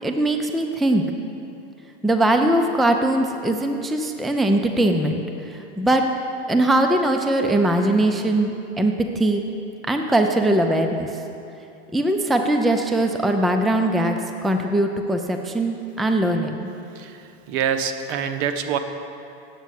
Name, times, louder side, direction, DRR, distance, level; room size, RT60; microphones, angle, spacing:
voice 1, 0.0-1.0 2.0-6.0 6.5-9.5 9.9-11.1 11.9-16.7, right 1 dB, ahead, 4 dB, 0.4 m, -21 dB
voice 2, 16.9-18.8, right 8 dB, 60° right, 8 dB, 0.9 m, -26 dB
8.1 x 7.4 x 8.2 m, 2.7 s
supercardioid pair, 130°, 29 cm